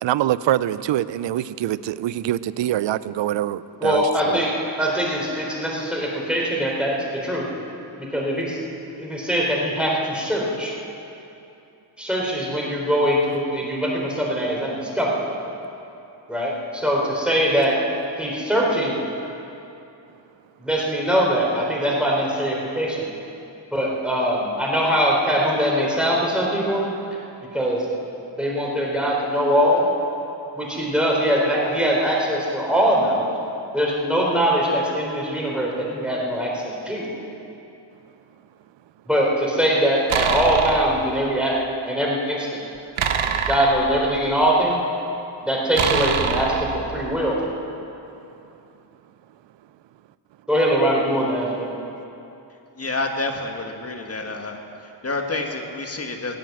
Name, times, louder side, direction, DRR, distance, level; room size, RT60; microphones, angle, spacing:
voice 1, 0.0-4.4, right 13 dB, 65° right, 17 dB, 0.6 m, -24 dB
voice 2, 3.8-4.5 4.8-7.0 7.2-7.4 8.1-8.6 9.0-10.7 12.0-15.2 16.3-17.8 18.2-19.0 20.6-23.0 23.7-26.8 27.5-27.9 28.4-29.9 30.6-33.3 33.7-37.1 39.1-41.6 41.9-42.5 43.5-44.8 45.4-46.5 46.9-47.4 50.5-51.7, equal, ahead, -3 dB, 4.1 m, -22 dB
sound 1, 40.1-41.0 43.0-44.5 45.7-47.2, right 7 dB, 80° right, 1.1 m, -25 dB
voice 3, 52.8-54.6 54.8-56.4, left 2 dB, 30° left, 3 dB, 1.8 m, -28 dB
16.0 x 9.2 x 7.9 m, 2.8 s
cardioid pair, 80°, 47 cm